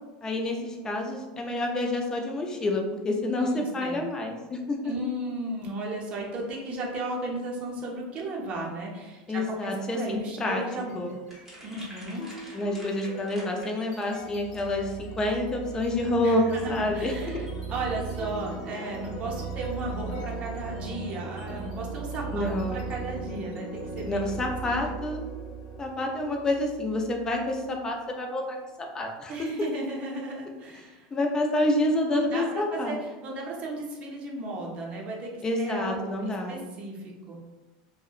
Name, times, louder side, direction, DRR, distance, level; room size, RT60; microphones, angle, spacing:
voice 1, 0.2-4.9 9.3-10.6 10.9-11.2 12.5-17.5 22.3-22.8 24.0-25.2 25.8-28.6 28.9-29.5 31.1-33.0 35.4-36.6, left 1 dB, 15° left, 2 dB, 0.4 m, -28 dB
voice 2, 3.5-4.0 4.8-11.0 11.6-12.3 16.2-24.2 24.7-24.8 29.3-31.1 32.1-37.4, right 2 dB, 35° right, -2 dB, 0.6 m, -35 dB
sound 1, 10.5-10.9 11.3-27.9, right 4 dB, 60° left, 0.9 m, -38 dB
sound 2, 11.3-15.2, equal, 5° right, 0.8 m, -48 dB
2.7 x 2.1 x 2.3 m, 1.2 s
supercardioid pair, 140°, 4 cm